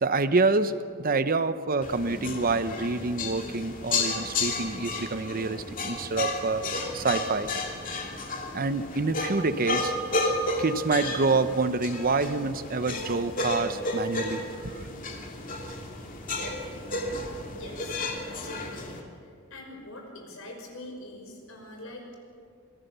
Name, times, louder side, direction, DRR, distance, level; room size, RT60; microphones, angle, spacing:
voice 1, 0.0-6.6 6.9-7.5 8.5-9.9 10.6-14.9, right 3 dB, 45° right, 12 dB, 0.8 m, -27 dB
sound 1, 1.8-19.0, left 2 dB, 40° left, 2.5 m, -32 dB
voice 2, 17.6-19.1 19.5-22.2, left 1 dB, 75° left, 2 dB, 5.5 m, -43 dB
26.5 x 18.5 x 6.9 m, 2.4 s
head